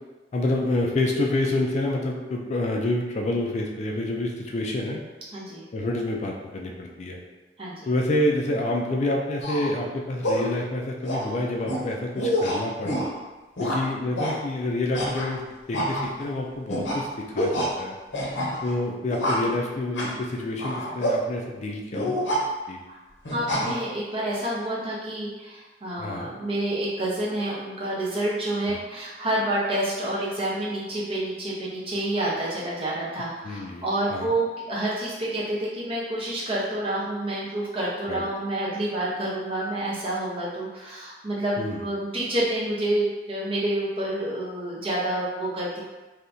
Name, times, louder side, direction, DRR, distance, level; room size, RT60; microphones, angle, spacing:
voice 1, 0.3-5.0 5.7-7.2 7.9-13.1 13.6-18.0 18.6-22.2 22.7-22.8 26.0-26.3 28.7-28.8 33.4-34.3 38.1-38.2 41.6-41.9, left 1 dB, 40° left, 0 dB, 0.3 m, -28 dB
voice 2, 5.3-5.6 7.6-7.9 18.5-18.6 22.9-23.0 23.3-45.8, right 1 dB, 30° right, -6 dB, 0.8 m, -28 dB
sound 1, 9.4-9.7 10.2-10.5 11.0-11.3 11.7-11.8 12.2-13.1 13.6-13.8 14.2-14.3 14.9-15.4 15.7-16.3 16.7-17.0 17.4-17.7 18.1-18.7 19.1-19.5 20.0-20.2 20.6-21.2 21.9-22.4 23.2-23.7, equal, 80° left, 0.8 m, -27 dB
3.4 x 2.7 x 2.6 m, 1.2 s
head